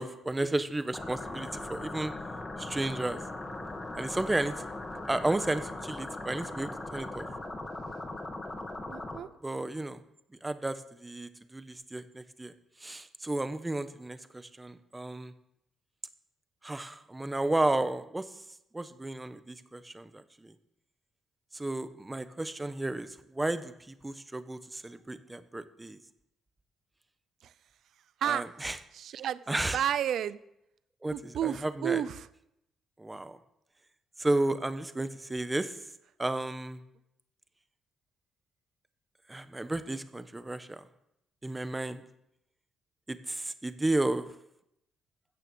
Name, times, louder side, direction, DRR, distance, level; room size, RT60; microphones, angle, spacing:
voice 1, 0.0-2.1 2.6-3.2 4.0-4.7 5.1-7.3 9.4-10.0 10.4-12.5 12.8-15.3 16.6-18.4 18.7-20.5 21.5-26.0 28.2-28.8 29.5-29.8 31.0-32.0 33.0-33.4 34.2-35.8 36.2-36.8 39.3-40.9 41.4-42.0 43.1-44.3, right 2 dB, 15° right, 11 dB, 1.1 m, -33 dB
sound 1, 0.9-9.2, left 2 dB, 25° left, 2.5 m, -39 dB
voice 2, 8.9-9.3 27.4-27.5 28.2-28.4 28.9-29.4 29.7-30.4 31.1-32.3, right 10 dB, 70° right, 17 dB, 0.6 m, -31 dB
15.5 x 6.7 x 7.0 m, 0.80 s
cardioid pair, 90°, 0 cm